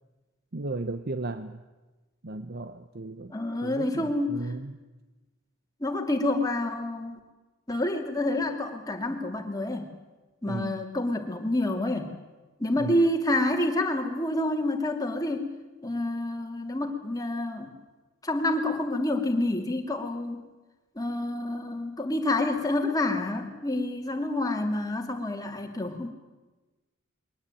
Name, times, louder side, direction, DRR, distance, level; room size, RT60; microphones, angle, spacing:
voice 1, 0.5-1.6 2.2-3.3 3.6-4.7 10.5-10.8 12.8-13.0, right 2 dB, 55° right, 10 dB, 0.9 m, -35 dB
voice 2, 3.3-4.5 5.8-7.2 7.7-9.9 10.4-12.1 12.6-15.5 15.8-17.7 18.2-20.4 21.0-26.1, left 1 dB, 20° left, 3 dB, 2.8 m, -28 dB
22.5 x 18.5 x 9.2 m, 1.2 s
head